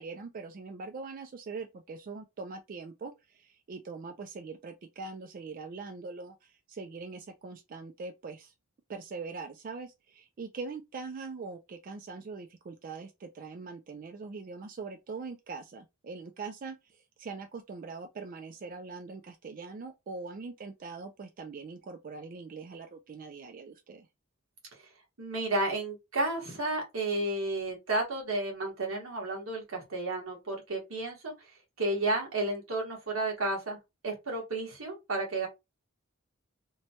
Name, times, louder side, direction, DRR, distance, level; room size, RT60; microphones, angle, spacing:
voice 1, 0.0-8.5 8.9-24.1, right 4 dB, 40° right, 0.3 m, -42 dB
voice 2, 25.2-31.3 31.8-33.8 34.0-35.5, right 2 dB, 85° right, 1.3 m, -32 dB
3.0 x 2.2 x 2.8 m
head